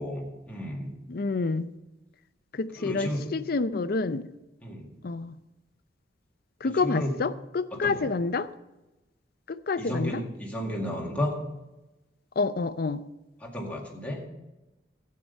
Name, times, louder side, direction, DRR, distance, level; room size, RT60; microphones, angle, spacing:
voice 1, 0.0-0.9 2.8-3.2 4.6-4.9 6.8-7.1 7.7-8.0 9.8-11.3 13.4-14.2, left 1 dB, 10° left, -2 dB, 2.0 m, -32 dB
voice 2, 1.1-1.7 2.5-4.3 5.0-5.4 6.6-8.5 9.7-10.2 12.4-13.0, left 3 dB, 55° left, 14 dB, 0.5 m, -28 dB
12.0 x 8.6 x 5.3 m, 1.0 s
head